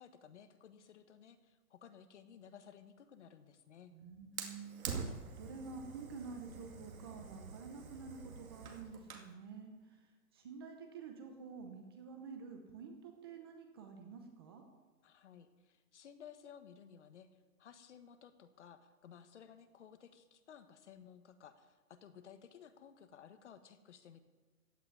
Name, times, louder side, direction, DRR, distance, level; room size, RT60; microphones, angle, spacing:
voice 1, 0.0-3.9 15.0-17.3 17.6-24.2, left 8 dB, 50° left, 10 dB, 1.4 m, -57 dB
voice 2, 3.9-14.6, right 5 dB, 15° right, 4 dB, 0.7 m, -50 dB
Fire, 4.4-9.3, right 5 dB, 70° right, 2.4 m, -46 dB
15.5 x 6.0 x 9.7 m, 1.2 s
hypercardioid pair, 165°, 44 cm